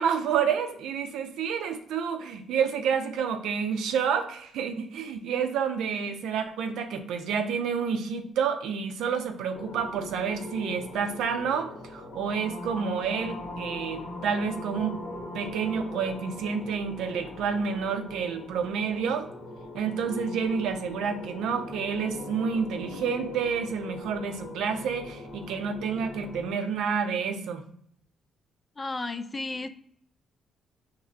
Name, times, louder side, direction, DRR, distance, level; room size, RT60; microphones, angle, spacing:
voice 1, 0.0-15.0 15.3-19.3 19.7-27.6, right 6 dB, 85° right, 6 dB, 0.5 m, -29 dB
sound 1, 9.5-26.5, left 2 dB, 60° left, 0.9 m, -42 dB
sound 2, 12.1-16.6, left 2 dB, 80° left, 1.1 m, -41 dB
voice 2, 28.8-29.7, left 3 dB, 25° left, 9 dB, 0.3 m, -33 dB
4.1 x 3.0 x 2.5 m, 0.66 s
cardioid pair, 90°, 0 cm